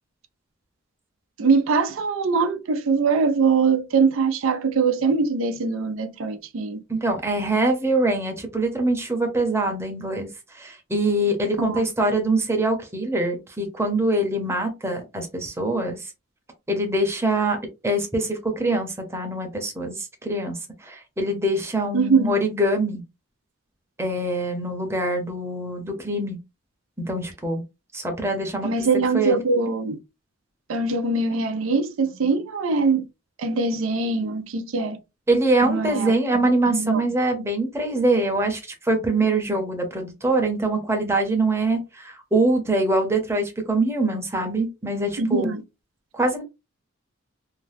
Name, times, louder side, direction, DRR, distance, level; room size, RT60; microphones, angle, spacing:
voice 1, 1.4-6.8 11.6-11.8 21.9-22.4 28.6-30.0 30.7-33.1 33.4-35.0 35.6-36.1 36.7-37.0 45.2-45.6, right 4 dB, 90° right, 0.5 m, -22 dB
voice 2, 6.9-16.1 16.7-17.6 17.8-23.0 24.0-26.4 27.0-27.6 27.9-28.9 29.1-29.4 35.3-45.5 46.1-46.4, right 2 dB, 15° right, 0.7 m, -24 dB
2.7 x 2.1 x 3.3 m
head